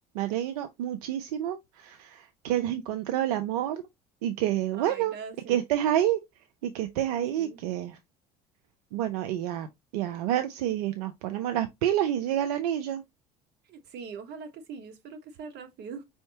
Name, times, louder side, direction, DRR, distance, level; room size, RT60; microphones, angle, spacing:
voice 1, 0.1-3.8 4.2-5.2 5.5-6.2 6.6-8.0 8.9-9.7 9.9-13.0, right 12 dB, 85° right, 0.6 m, -28 dB
voice 2, 4.8-5.6 7.2-7.6 13.7-16.0, right 5 dB, 60° right, 1.4 m, -42 dB
5.2 x 3.5 x 2.8 m
hypercardioid pair, 75°, 19 cm